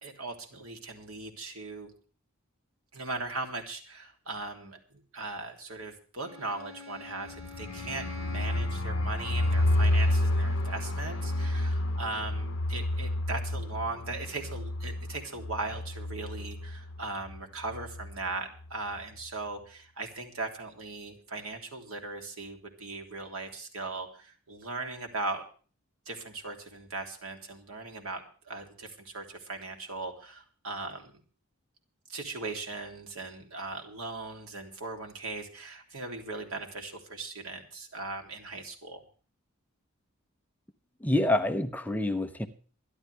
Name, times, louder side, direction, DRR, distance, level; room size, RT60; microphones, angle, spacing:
voice 1, 0.0-1.9 2.9-25.4 26.1-31.1 32.1-39.0, right 3 dB, 90° right, 4 dB, 3.2 m, -39 dB
Bowed string instrument, 6.2-11.7, left 4 dB, 30° right, 4.3 m, -47 dB
sound 1, 7.3-17.0 17.3-17.4 17.7-18.1, left 1 dB, 65° left, 0.9 m, -30 dB
voice 2, 41.0-42.5, left 1 dB, 10° left, 7 dB, 0.9 m, -27 dB
24.0 x 11.5 x 3.4 m, 0.39 s
head